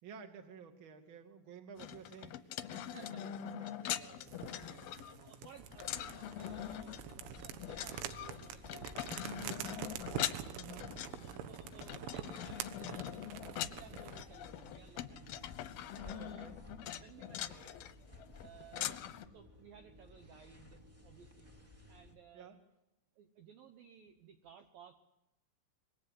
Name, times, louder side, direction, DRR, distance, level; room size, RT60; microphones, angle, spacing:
voice 1, 0.0-5.4 10.5-11.4 16.2-16.6 18.7-19.0 22.3-22.6, right 6 dB, 35° right, 5 dB, 2.3 m, -54 dB
sound 1, 1.8-19.3, left 11 dB, 70° left, 2.4 m, -43 dB
voice 2, 2.7-3.2 4.5-10.0 11.2-15.5 16.0-16.5 16.9-17.8 18.4-19.0 19.3-21.5 21.9-22.5 23.2-25.0, right 7 dB, 65° right, 5 dB, 2.5 m, -58 dB
sound 2, 4.3-14.3, right 10 dB, 85° right, 3.6 m, -46 dB
sound 3, 5.6-22.2, left 2 dB, 5° right, 1.6 m, -57 dB
25.5 x 23.0 x 8.0 m, 0.89 s
omnidirectional pair, 5.3 m